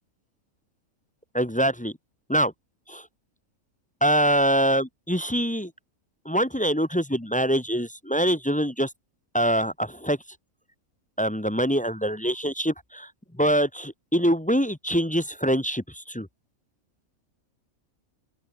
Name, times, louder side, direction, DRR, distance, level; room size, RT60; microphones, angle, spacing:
voice 1, 1.3-1.9 2.3-2.5 2.9-3.1 4.0-5.7 6.2-8.9 9.3-10.2 11.2-13.1 13.4-16.3, equal, 5° left, 0.7 m, -24 dB
open air
omnidirectional pair, 1.5 m